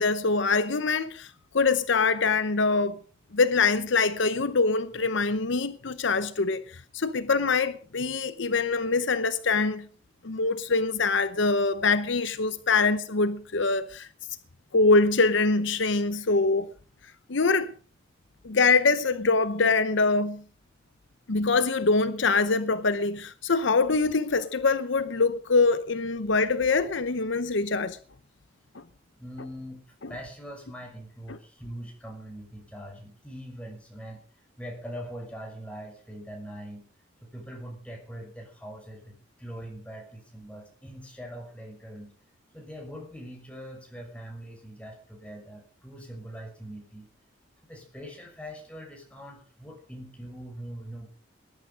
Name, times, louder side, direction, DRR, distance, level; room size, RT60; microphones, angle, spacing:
voice 1, 0.0-3.0 3.3-9.9 10.2-14.1 14.7-16.7 17.3-17.7 18.4-20.4 21.3-28.0 28.7-28.8, left 4 dB, 65° left, 0.8 m, -24 dB
voice 2, 29.1-29.8 30.1-34.2 34.6-36.8 37.2-42.1 42.5-47.1 47.6-51.1, equal, 5° left, 6.2 m, -42 dB
20.0 x 11.0 x 5.2 m
head